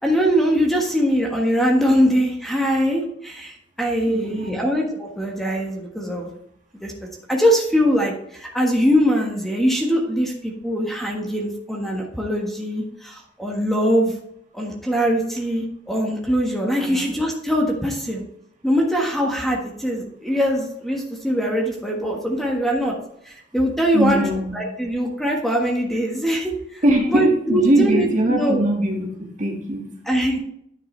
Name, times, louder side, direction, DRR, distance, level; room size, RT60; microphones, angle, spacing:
voice 1, 0.0-6.3 6.7-6.9 7.3-14.1 14.5-18.2 18.6-22.9 23.2-24.2 24.5-26.8 27.1-28.6 30.0-30.4, equal, ahead, -1 dB, 1.4 m, -22 dB
voice 2, 4.1-4.7 16.8-17.1 23.9-24.5 26.8-29.1 29.4-29.9, right 1 dB, 45° right, 0 dB, 1.8 m, -21 dB
10.5 x 6.0 x 3.2 m, 0.71 s
head